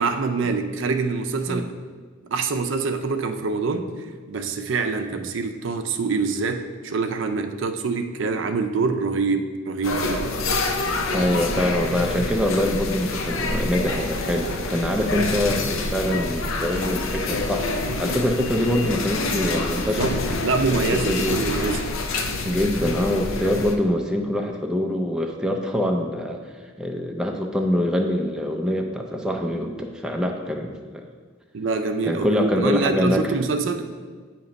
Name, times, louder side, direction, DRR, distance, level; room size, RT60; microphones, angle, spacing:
voice 1, 0.0-1.7 2.3-3.9 4.3-10.3 20.0-20.1 20.4-21.9 31.5-33.8, right 4 dB, 65° right, 6 dB, 0.5 m, -25 dB
sound 1, 9.8-23.7, left 2 dB, 80° left, 0.6 m, -27 dB
voice 2, 11.1-20.1 20.7-21.4 22.4-26.4 26.8-31.1 32.0-33.4, left 1 dB, 5° right, 1 dB, 0.4 m, -24 dB
8.3 x 2.9 x 5.2 m, 1.5 s
head